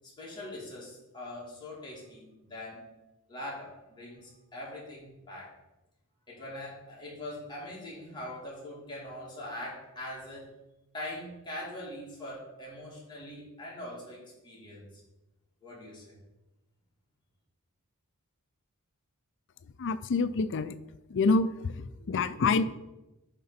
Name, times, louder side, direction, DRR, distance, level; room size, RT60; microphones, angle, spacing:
voice 1, 0.2-2.9 3.3-5.5 6.3-10.5 10.9-14.9 15.6-16.2, left 1 dB, 20° left, -6 dB, 2.6 m, -42 dB
voice 2, 19.8-20.8 21.1-22.6, left 4 dB, 55° left, 13 dB, 0.4 m, -27 dB
9.9 x 3.7 x 5.8 m, 0.99 s
head